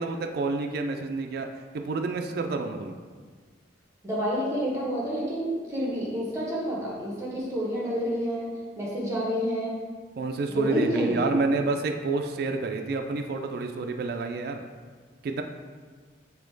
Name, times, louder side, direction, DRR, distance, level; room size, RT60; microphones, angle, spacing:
voice 1, 0.0-1.5 1.7-3.0 10.2-14.6 15.2-15.4, right 3 dB, 55° right, 5 dB, 0.3 m, -29 dB
voice 2, 4.0-8.5 8.8-9.8 10.5-11.3, equal, 15° right, -5 dB, 1.1 m, -29 dB
4.1 x 2.8 x 4.6 m, 1.5 s
head